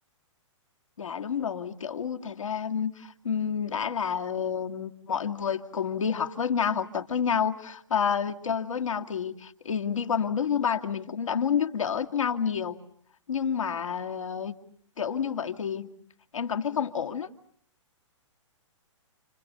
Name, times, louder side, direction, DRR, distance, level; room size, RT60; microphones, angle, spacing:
voice 1, 1.0-12.8 13.3-14.6 15.0-15.9 16.3-17.3, left 7 dB, 85° left, 4 dB, 2.4 m, -29 dB
30.0 x 27.0 x 7.0 m, 0.64 s
hypercardioid pair, 135°, 16 cm